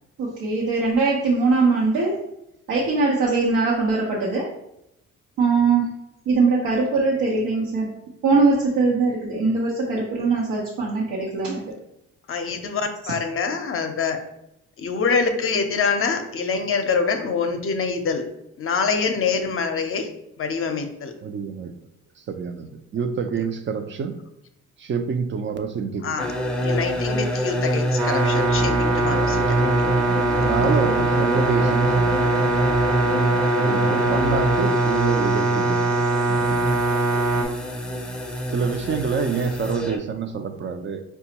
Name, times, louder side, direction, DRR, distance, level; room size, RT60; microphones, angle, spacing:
voice 1, 0.2-2.2 2.7-4.5 5.4-5.9 6.3-7.9 8.2-11.6, right 3 dB, 85° right, -4 dB, 0.9 m, -21 dB
voice 2, 12.3-14.2 14.8-18.2 18.6-20.1 20.4-21.1 26.0-26.3 26.6-29.7 30.4-30.6, left 5 dB, 45° left, 6 dB, 0.6 m, -25 dB
voice 3, 21.2-21.7 22.2-24.2 24.8-26.2 30.1-32.5 33.6-35.9 36.3-36.8 37.7-37.8 38.5-41.0, right 6 dB, 40° right, 8 dB, 0.5 m, -27 dB
sound 1, 26.2-40.0, equal, 5° left, 0.6 m, -26 dB
sound 2, 28.0-37.4, right 3 dB, 55° right, 0.9 m, -22 dB
5.0 x 2.3 x 2.8 m, 0.81 s
cardioid pair, 90°, 30 cm